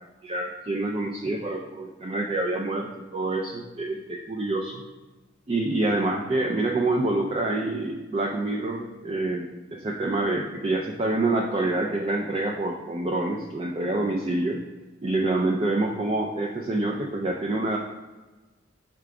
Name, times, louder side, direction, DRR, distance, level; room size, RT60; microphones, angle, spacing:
voice 1, 0.0-4.8 5.5-14.6 15.0-17.8, right 2 dB, 30° right, 1 dB, 0.3 m, -27 dB
4.9 x 2.2 x 4.7 m, 1.2 s
head